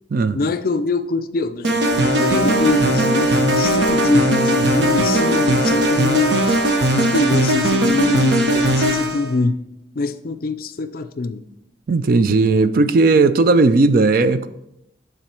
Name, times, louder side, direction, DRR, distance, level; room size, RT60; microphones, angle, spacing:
voice 1, 0.3-6.6 6.9-9.6 10.0-11.4, left 3 dB, 55° left, 0.4 m, -24 dB
sound 1, 1.6-9.3, right 1 dB, 90° right, 1.0 m, -18 dB
voice 2, 11.9-14.5, right 3 dB, 55° right, 0.4 m, -15 dB
9.1 x 4.0 x 4.4 m
head